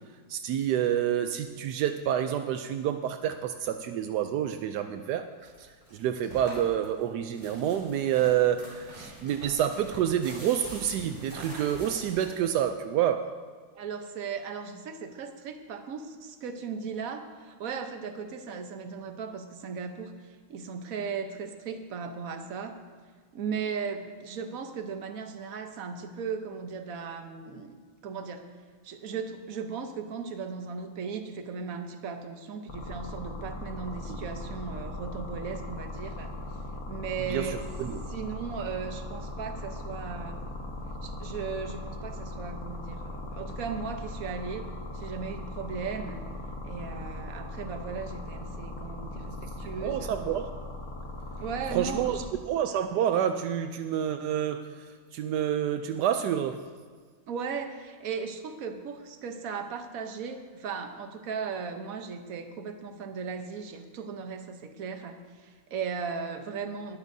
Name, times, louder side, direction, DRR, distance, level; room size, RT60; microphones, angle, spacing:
voice 1, 0.3-13.3 34.1-34.2 37.3-38.0 49.8-50.5 51.7-52.2 52.5-56.6, right 10 dB, 80° right, 7 dB, 0.9 m, -28 dB
sound 1, 5.4-12.7, equal, 20° right, 3.6 m, -45 dB
voice 2, 13.7-20.1 20.5-22.7 23.3-28.4 28.8-36.3 36.9-37.6 38.1-40.4 41.0-44.7 44.9-46.2 46.6-50.1 51.4-52.2 57.3-67.0, right 5 dB, 55° right, 6 dB, 1.1 m, -37 dB
sound 2, 32.7-52.2, left 1 dB, 40° left, 1.6 m, -39 dB
19.5 x 11.5 x 2.7 m, 1.6 s
omnidirectional pair, 2.3 m